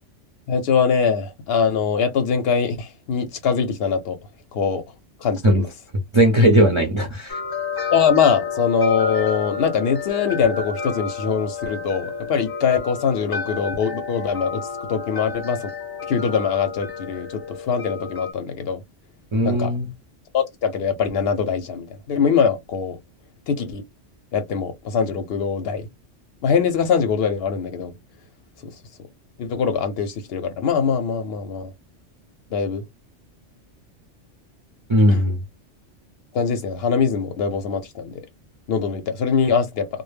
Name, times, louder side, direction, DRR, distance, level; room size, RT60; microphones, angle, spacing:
voice 1, 0.5-4.2 4.5-4.8 5.2-5.7 7.9-15.7 16.1-18.8 19.4-19.7 20.3-23.0 23.5-23.8 24.3-25.9 26.4-27.9 28.6-28.7 29.4-31.7 32.5-32.8 35.1-35.3 36.3-38.2 38.7-39.9, left 6 dB, 65° left, 0.7 m, -22 dB
voice 2, 6.1-7.4 19.3-19.9 34.9-35.4, equal, 45° right, 0.4 m, -17 dB
sound 1, 7.3-18.3, left 6 dB, 30° left, 0.4 m, -30 dB
2.0 x 2.0 x 3.3 m
omnidirectional pair, 1.2 m